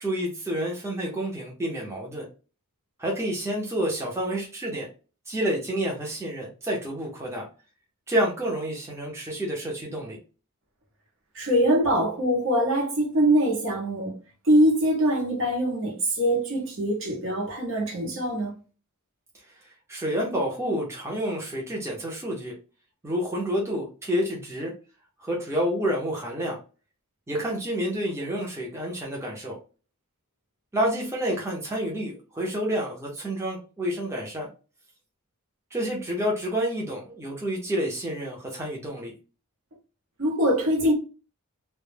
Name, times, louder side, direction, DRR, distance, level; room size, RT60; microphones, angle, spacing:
voice 1, 0.0-2.3 3.0-4.9 5.3-7.5 8.1-10.2 19.5-22.5 23.0-24.7 25.2-26.6 27.3-29.6 30.7-34.5 35.7-39.1, equal, 10° right, 0.5 m, -29 dB
voice 2, 11.3-14.1 14.4-18.5 40.2-40.9, equal, 60° right, 0.8 m, -23 dB
2.1 x 2.0 x 3.1 m
head